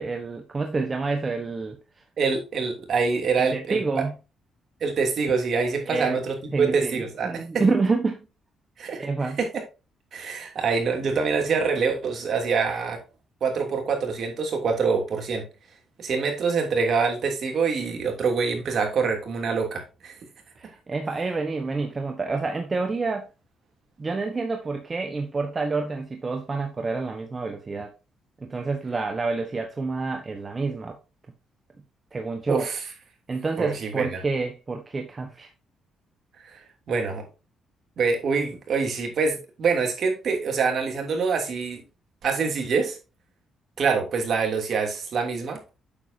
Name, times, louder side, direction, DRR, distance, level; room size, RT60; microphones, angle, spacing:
voice 1, 0.0-1.8 3.4-4.1 5.8-6.2 6.5-8.2 9.0-9.4 20.6-23.3 24.0-27.9 28.4-31.0 32.1-32.7 33.3-35.5, right 3 dB, 30° right, 1.3 m, -28 dB
voice 2, 2.2-4.0 4.8-7.4 8.8-9.5 10.1-13.0 13.4-15.5 16.0-20.2 32.5-32.8 33.6-34.2 36.4-36.6 36.9-37.2 38.0-41.8 42.2-43.0 43.8-45.6, right 5 dB, 55° right, 3.0 m, -25 dB
8.6 x 7.2 x 2.8 m
cardioid pair, 90°, 0 cm